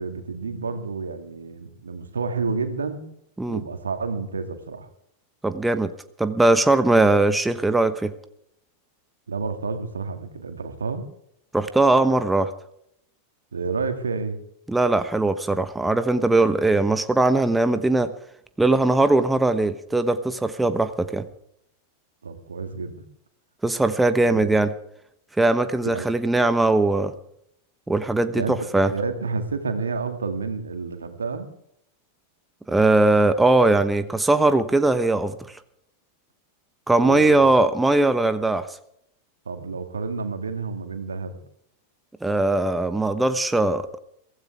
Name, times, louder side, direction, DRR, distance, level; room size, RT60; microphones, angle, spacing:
voice 1, 0.0-3.0 3.5-4.9 9.3-11.1 13.5-14.4 22.2-23.0 24.2-24.6 25.8-26.1 28.3-31.5 37.0-37.5 39.5-41.4, right 4 dB, 70° right, 7 dB, 2.3 m, -30 dB
voice 2, 5.4-5.9 6.2-8.1 11.5-12.5 14.7-18.1 18.6-21.3 23.6-24.7 25.4-27.1 27.9-28.9 32.7-35.4 36.9-38.7 42.2-44.0, right 2 dB, 5° right, 11 dB, 1.1 m, -20 dB
23.5 x 16.0 x 3.5 m, 0.72 s
figure-of-eight pair, 90°, 0 cm